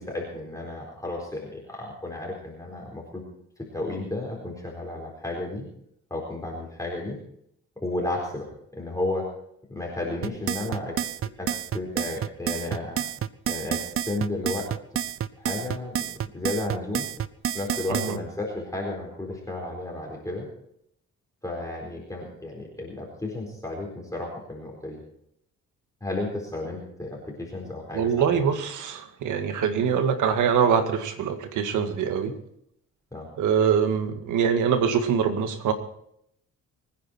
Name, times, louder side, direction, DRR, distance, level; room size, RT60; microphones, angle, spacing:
voice 1, 0.0-3.2 3.7-5.6 6.1-7.2 7.8-8.5 8.7-9.3 9.7-11.1 11.4-13.0 13.5-14.7 15.4-17.1 17.5-20.5 21.4-25.0 26.0-28.4 33.1-33.3, left 2 dB, 10° left, -2 dB, 4.3 m, -33 dB
sound 1, 10.2-18.2, right 9 dB, 45° right, 0.7 m, -29 dB
voice 2, 27.9-32.3 33.4-35.7, right 7 dB, 80° right, 8 dB, 2.0 m, -24 dB
23.5 x 10.5 x 4.4 m, 0.72 s
cardioid pair, 90°, 30 cm